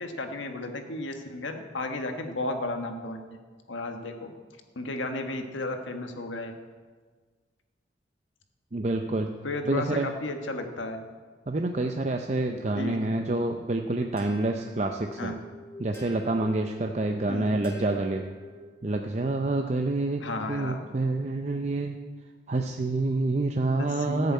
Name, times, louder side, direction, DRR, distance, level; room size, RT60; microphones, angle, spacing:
voice 1, 0.0-3.2 3.7-4.3 4.7-6.6 9.4-11.0 12.8-13.0 15.2-15.3 17.3-17.5 20.2-20.8 23.8-24.3, left 2 dB, 90° left, 5 dB, 1.4 m, -33 dB
voice 2, 8.7-9.3 9.7-10.1 11.5-15.3 15.8-18.3 18.8-22.0 22.5-24.3, right 2 dB, 35° right, 4 dB, 0.6 m, -27 dB
sound 1, 14.2-18.9, left 1 dB, 15° left, 2.0 m, -46 dB
14.5 x 6.8 x 8.4 m, 1.5 s
head